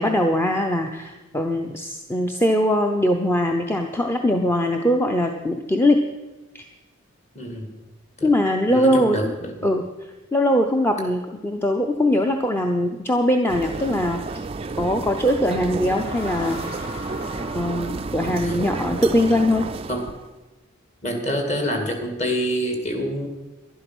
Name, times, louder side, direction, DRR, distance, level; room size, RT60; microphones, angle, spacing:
voice 1, 0.0-6.0 6.5-6.7 8.2-9.3 9.6-14.4 14.8-16.6 17.5-19.7, left 1 dB, 10° left, 4 dB, 0.6 m, -21 dB
voice 2, 7.4-7.7 8.2-8.3 8.7-9.5 18.2-18.6 19.9-20.0 21.0-23.3, equal, 35° left, 4 dB, 2.1 m, -27 dB
sound 1, 13.5-20.3, right 3 dB, 30° right, 0.3 m, -31 dB
sound 2, 15.5-19.0, left 1 dB, 70° left, 4.0 m, -39 dB
11.5 x 11.5 x 6.1 m, 1.1 s
head